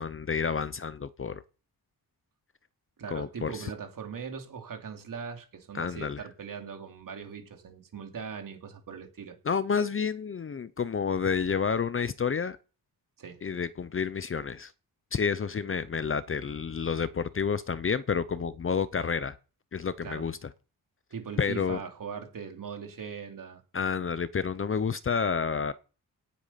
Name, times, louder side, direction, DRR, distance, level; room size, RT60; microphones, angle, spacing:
voice 1, 0.0-1.4 3.1-3.7 5.7-6.2 9.4-12.6 13.4-14.7 15.1-19.4 19.7-20.5 21.4-21.8 23.7-25.7, left 6 dB, 35° left, 0.6 m, -29 dB
voice 2, 3.0-9.4 13.2-13.4 20.0-20.3 21.1-23.6, right 6 dB, 55° right, 2.8 m, -40 dB
17.5 x 8.3 x 5.7 m
wide cardioid pair, 170°, 38 cm